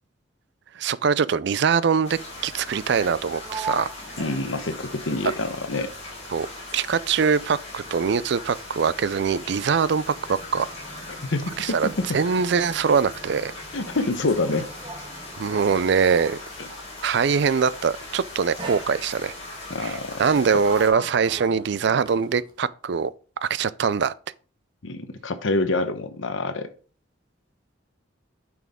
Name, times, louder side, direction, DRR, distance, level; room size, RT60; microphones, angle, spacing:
voice 1, 0.8-3.9 6.3-6.5 6.7-10.0 10.3-10.7 11.6-13.5 15.4-16.4 17.0-19.3 19.8-23.1 23.4-24.1, right 6 dB, 60° right, 0.4 m, -23 dB
sound 1, 2.0-20.9, left 2 dB, 35° left, 4.2 m, -39 dB
Sliding door, 3.0-6.3 6.6-16.8 17.7-18.0 18.6-19.5 20.1-22.6, right 3 dB, 25° right, 1.5 m, -42 dB
voice 2, 4.2-5.9 11.2-12.2 13.7-14.7 16.6-16.7 19.7-20.2 20.5-20.6 24.8-26.7, left 2 dB, 75° left, 1.0 m, -27 dB
9.1 x 6.1 x 3.6 m
head